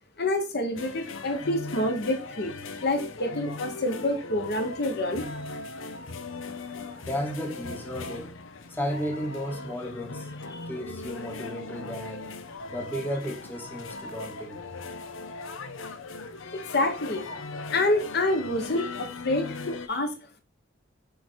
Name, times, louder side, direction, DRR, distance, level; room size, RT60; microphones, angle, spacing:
voice 1, 0.2-2.5 2.8-5.2 10.5-10.6 16.5-17.3 17.7-20.1, left 1 dB, 55° left, 1.1 m, -27 dB
sound 1, 0.7-19.9, left 3 dB, 80° left, 0.8 m, -39 dB
voice 2, 7.1-8.3 8.7-12.3 12.7-14.6, equal, 10° left, 1.0 m, -34 dB
6.9 x 3.7 x 4.5 m
head